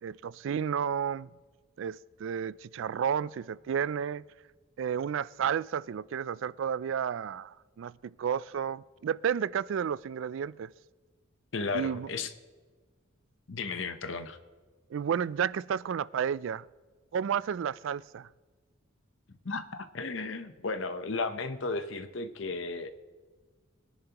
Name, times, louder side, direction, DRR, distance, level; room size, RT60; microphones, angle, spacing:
voice 1, 0.0-1.3 1.8-4.2 4.8-10.7 11.7-12.1 14.9-16.7 17.1-18.3, right 8 dB, 65° right, 0.3 m, -32 dB
voice 2, 11.5-12.3 13.5-14.4 19.3-22.9, left 3 dB, 65° left, 0.9 m, -34 dB
21.5 x 10.5 x 3.0 m
head